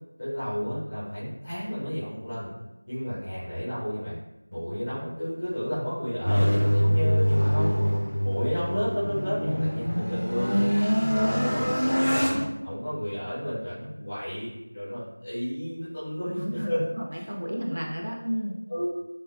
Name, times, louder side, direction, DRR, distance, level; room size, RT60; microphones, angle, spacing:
voice 1, 0.2-2.5 2.8-4.2 4.5-7.8 8.2-10.7 11.1-12.3 12.6-16.8 17.1-17.3 18.7-18.8, equal, 10° left, -13 dB, 0.6 m, -32 dB
sound 1, 6.3-12.5, equal, 75° left, 0.4 m, -24 dB
voice 2, 11.2-11.7 16.3-18.6, equal, 55° right, -1 dB, 0.5 m, -33 dB
3.3 x 2.2 x 2.3 m, 0.96 s
figure-of-eight pair, 180°, 0 cm